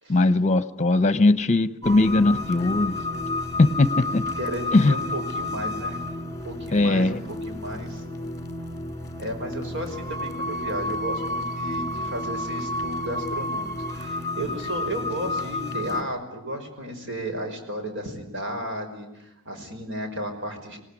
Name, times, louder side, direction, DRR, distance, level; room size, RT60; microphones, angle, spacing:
voice 1, 0.1-2.9 3.6-4.2 4.7-5.0 6.7-7.2, left 2 dB, 35° left, 14 dB, 0.9 m, -20 dB
sound 1, 1.8-16.0, left 2 dB, 15° left, 2.0 m, -31 dB
voice 2, 4.4-6.0 6.4-7.2 7.5-8.0 9.2-20.8, right 1 dB, 60° right, 4 dB, 5.3 m, -34 dB
25.5 x 18.5 x 9.9 m, 0.91 s
head